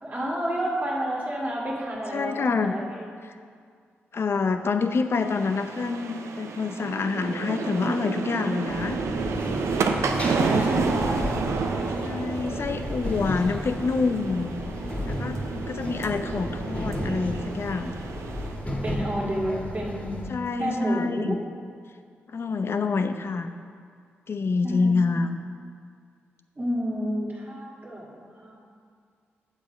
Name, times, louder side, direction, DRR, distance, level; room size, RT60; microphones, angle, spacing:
voice 1, 0.0-2.9 10.2-11.3 18.8-20.3 20.6-21.4 24.6-25.2 26.6-28.7, equal, 30° right, -7 dB, 2.0 m, -30 dB
voice 2, 2.1-2.7 3.2-3.3 4.1-9.0 12.0-14.5 15.1-17.9 20.3-21.4 22.3-23.5 24.3-25.4, left 4 dB, 55° left, 8 dB, 0.6 m, -27 dB
sound 1, 5.1-18.6, right 5 dB, 75° right, 0.6 m, -31 dB
sound 2, 8.7-20.3, equal, 25° left, 1.9 m, -33 dB
7.4 x 7.3 x 5.1 m, 2.1 s
supercardioid pair, 45°, 5 cm